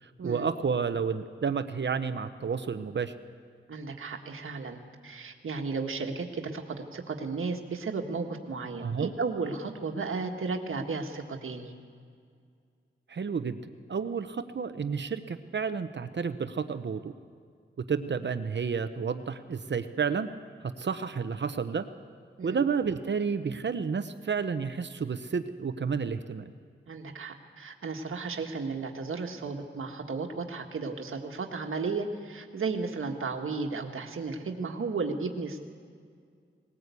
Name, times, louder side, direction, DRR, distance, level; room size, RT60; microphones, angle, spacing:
voice 1, 0.0-3.1 8.8-9.1 13.1-17.1 17.9-20.3 20.8-21.8 22.4-26.4, right 6 dB, 60° right, 10 dB, 0.9 m, -31 dB
voice 2, 3.7-6.6 6.9-11.7 22.4-22.6 26.9-35.6, right 4 dB, 90° right, 3 dB, 1.6 m, -34 dB
20.0 x 18.5 x 8.3 m, 2.2 s
wide cardioid pair, 100°, 21 cm